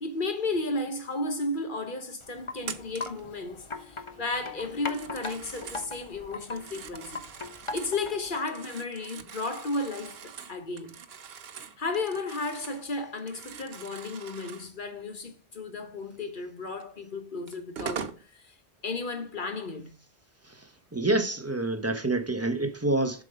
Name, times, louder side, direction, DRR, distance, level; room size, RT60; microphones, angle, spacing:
voice 1, 0.0-7.2 7.7-11.0 11.8-18.5 18.8-19.9, left 3 dB, 50° left, 1.4 m, -34 dB
Wind chime, 2.2-8.4, left 3 dB, 30° left, 0.8 m, -40 dB
Telephone, 2.6-3.2 4.7-5.9 6.4-8.0 8.4-12.9 13.1-14.7 16.8-16.9 17.5-18.2, right 7 dB, 65° right, 1.0 m, -42 dB
voice 2, 20.9-23.2, right 2 dB, 15° right, 0.8 m, -27 dB
7.5 x 5.0 x 5.2 m
omnidirectional pair, 1.1 m